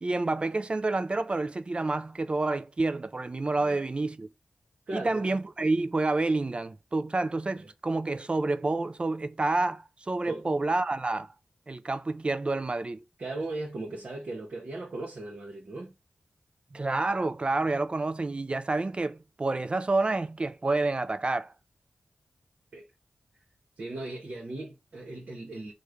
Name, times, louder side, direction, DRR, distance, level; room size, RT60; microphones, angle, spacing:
voice 1, 0.0-4.3 4.9-11.3 11.7-13.0 16.7-21.5, right 2 dB, 40° right, 0.3 m, -29 dB
voice 2, 4.9-5.4 7.6-7.7 10.3-10.5 13.2-15.9 22.7-22.9 23.8-25.7, right 2 dB, 65° right, 0.9 m, -38 dB
3.1 x 2.2 x 3.5 m
cardioid pair, 50°, 3 cm